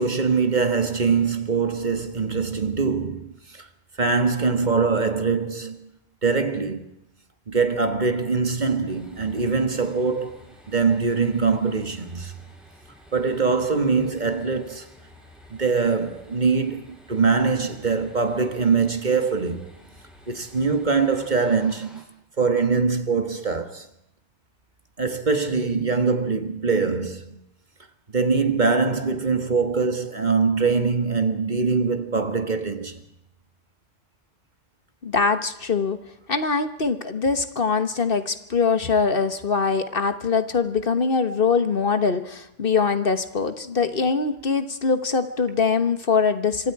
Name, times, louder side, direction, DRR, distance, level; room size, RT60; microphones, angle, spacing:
voice 1, 0.0-3.7 4.0-5.9 6.2-6.9 7.5-12.3 13.1-14.9 15.5-19.7 20.3-22.1 22.4-23.9 25.0-27.4 28.1-33.0, right 4 dB, 40° right, 1.6 m, -23 dB
sound 1, 8.8-22.0, left 1 dB, ahead, 6.6 m, -51 dB
voice 2, 35.0-36.0 36.3-46.7, left 5 dB, 50° left, 1.4 m, -23 dB
26.5 x 25.0 x 4.8 m
omnidirectional pair, 1.2 m